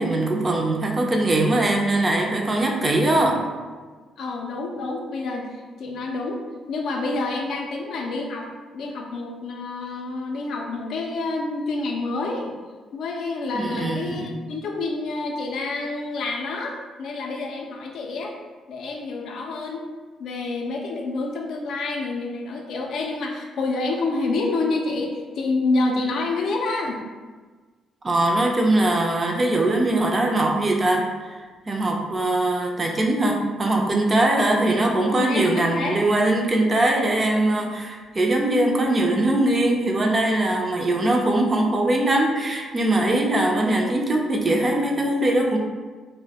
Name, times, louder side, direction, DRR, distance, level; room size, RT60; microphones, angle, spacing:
voice 1, 0.0-3.4 13.5-14.3 28.0-31.4 31.7-45.6, right 1 dB, 30° right, 1 dB, 0.3 m, -21 dB
voice 2, 4.2-6.4 6.7-8.5 8.7-12.5 12.9-18.3 18.7-19.9 20.2-27.0 34.4-34.5 35.1-36.0, left 3 dB, 70° left, 1 dB, 0.3 m, -28 dB
2.2 x 2.1 x 2.7 m, 1.4 s
cardioid pair, 90°, 0 cm